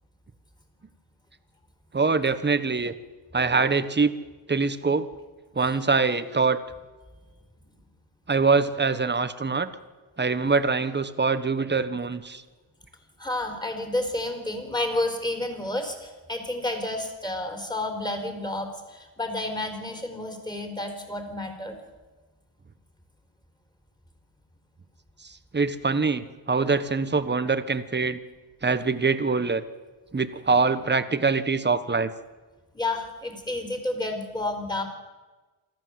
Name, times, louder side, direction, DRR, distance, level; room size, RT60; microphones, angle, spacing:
voice 1, 1.9-2.9 3.3-4.1 4.5-5.0 5.5-6.6 8.3-9.7 10.2-12.4 25.2-28.2 28.6-29.6 30.1-32.1, right 4 dB, 20° right, 12 dB, 1.3 m, -24 dB
voice 2, 13.2-21.8 32.7-34.8, left 2 dB, 10° left, 5 dB, 4.2 m, -30 dB
26.5 x 14.0 x 7.9 m, 1.3 s
cardioid pair, 110°, 49 cm